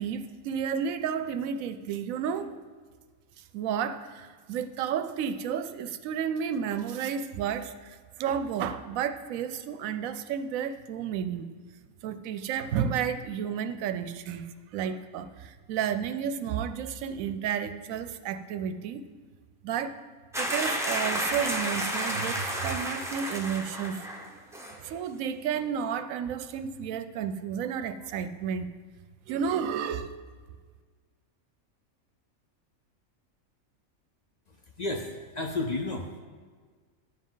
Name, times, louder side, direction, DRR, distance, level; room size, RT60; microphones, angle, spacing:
voice 1, 0.0-2.5 3.5-11.5 12.0-19.1 19.6-20.0 20.4-24.0 24.8-28.7 29.3-30.1, right 8 dB, 75° right, 10 dB, 1.0 m, -32 dB
sound 1, 20.3-24.3 24.5-24.8, equal, 5° right, 0.6 m, -31 dB
voice 2, 34.5-36.1, left 2 dB, 45° left, 3 dB, 0.5 m, -32 dB
10.0 x 7.2 x 3.9 m, 1.5 s
omnidirectional pair, 1.5 m